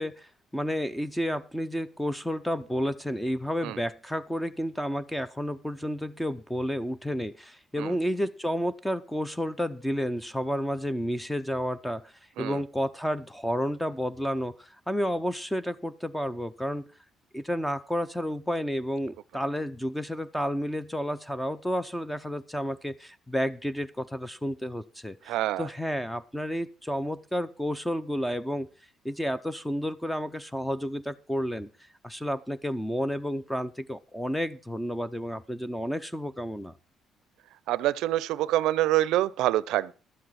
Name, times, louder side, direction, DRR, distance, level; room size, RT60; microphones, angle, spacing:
voice 1, 0.0-12.1 12.4-16.9 17.3-28.7 29.0-31.7 32.0-36.7, equal, 5° left, 0.7 m, -31 dB
voice 2, 25.3-25.7 37.7-39.9, right 14 dB, 90° right, 0.5 m, -26 dB
12.0 x 7.9 x 5.8 m
cardioid pair, 140°, 0 cm